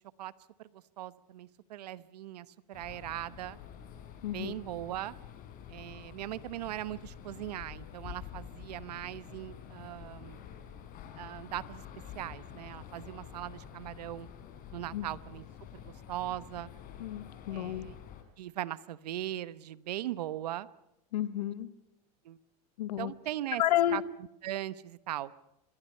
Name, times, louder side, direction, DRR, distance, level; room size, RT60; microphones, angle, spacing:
voice 1, 0.6-3.6 4.3-5.2 5.7-10.4 11.2-11.8 12.1-14.3 14.7-15.4 15.7-16.7 17.5-18.0 18.4-20.7 22.2-22.4 23.0-23.6 23.9-24.0 24.4-25.3, right 13 dB, 85° right, 17 dB, 1.0 m, -39 dB
sound 1, 2.7-18.2, left 9 dB, 45° left, 4.3 m, -48 dB
voice 2, 4.2-4.5 14.9-15.1 17.0-17.9 21.1-21.7 22.8-23.1 23.6-24.0, left 13 dB, 85° left, 14 dB, 1.4 m, -30 dB
26.5 x 22.0 x 5.6 m, 0.90 s
supercardioid pair, 110°, 20 cm